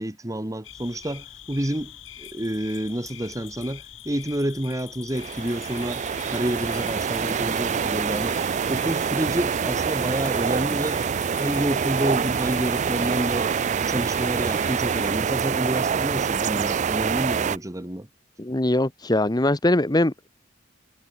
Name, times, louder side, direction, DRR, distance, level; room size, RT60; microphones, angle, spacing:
voice 1, 0.0-1.9 2.2-8.4 8.7-11.0 11.4-13.5 13.8-18.1, right 1 dB, 15° right, 1.3 m, -29 dB
sound 1, 0.6-15.1, left 10 dB, 75° left, 2.5 m, -44 dB
sound 2, 5.1-17.6, right 6 dB, 35° right, 0.4 m, -25 dB
voice 2, 18.4-20.3, left 1 dB, 20° left, 1.0 m, -22 dB
head